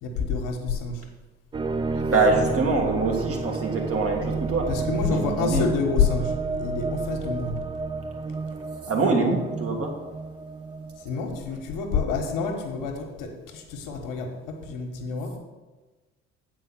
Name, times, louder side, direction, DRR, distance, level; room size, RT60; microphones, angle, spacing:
voice 1, 0.0-1.1 2.3-2.4 4.7-7.5 11.0-15.4, left 5 dB, 60° left, 4 dB, 1.4 m, -28 dB
sound 1, 1.5-12.5, right 3 dB, 15° right, 0.4 m, -31 dB
voice 2, 1.9-4.7 5.1-5.7 8.9-10.0, right 3 dB, 40° right, 1 dB, 2.0 m, -24 dB
8.8 x 4.6 x 6.1 m, 1.2 s
figure-of-eight pair, 50°, 37 cm